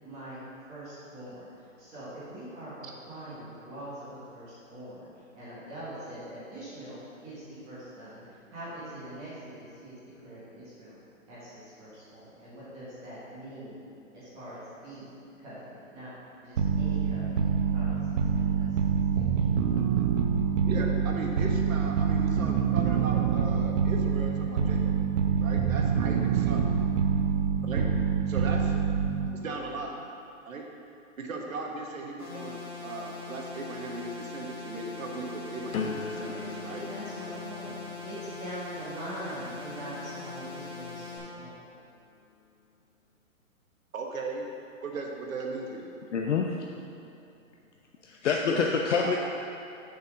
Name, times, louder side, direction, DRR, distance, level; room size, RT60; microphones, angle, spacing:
voice 1, 0.0-0.4 0.7-10.9 11.3-13.8 14.1-15.1 15.4-16.1 16.4-19.5 36.1-41.6, right 1 dB, 15° right, -11 dB, 1.6 m, -43 dB
sound 1, 16.6-29.5, right 6 dB, 60° right, 0.8 m, -26 dB
voice 2, 20.6-25.0 25.4-26.7 27.6-27.9 28.3-28.7 29.4-30.0 30.5-30.6 31.2-36.8 43.9-44.5 44.8-45.9 48.5-48.7 49.0-49.2, right 3 dB, 75° right, 1 dB, 1.4 m, -37 dB
sound 2, 32.2-41.2, left 4 dB, 20° left, 1.8 m, -41 dB
sound 3, 35.7-41.6 42.1-42.5, left 5 dB, 85° left, 1.0 m, -42 dB
voice 3, 46.1-46.5 48.2-49.2, left 6 dB, 60° left, 1 dB, 0.6 m, -26 dB
6.7 x 4.8 x 6.1 m, 2.8 s
hypercardioid pair, 165°, 41 cm